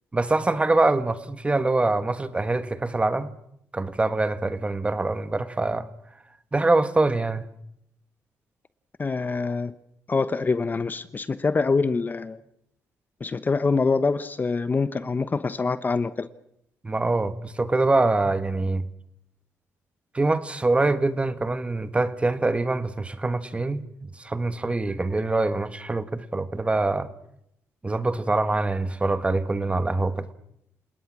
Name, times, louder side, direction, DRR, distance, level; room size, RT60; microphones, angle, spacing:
voice 1, 0.1-3.3 3.7-5.9 6.5-7.5 16.8-18.9 20.1-23.8 24.2-27.1 27.8-30.3, right 2 dB, 20° right, 1.4 m, -24 dB
voice 2, 9.0-9.7 10.1-12.4 13.2-16.3, left 4 dB, 30° left, 1.0 m, -25 dB
29.0 x 19.0 x 6.2 m
cardioid pair, 95°, 6 cm